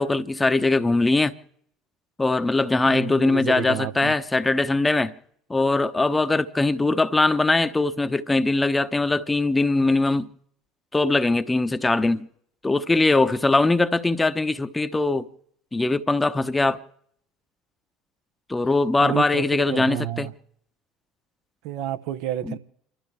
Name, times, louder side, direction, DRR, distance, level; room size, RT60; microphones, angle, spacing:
voice 1, 0.0-1.3 2.2-5.1 5.5-10.3 10.9-12.3 12.6-15.3 15.7-16.8 18.5-20.3 22.4-22.6, left 2 dB, 15° left, 1.0 m, -21 dB
voice 2, 2.9-4.1 19.0-20.3 21.6-22.6, right 11 dB, 65° right, 0.9 m, -30 dB
30.0 x 13.0 x 3.3 m
hypercardioid pair, 65°, 0 cm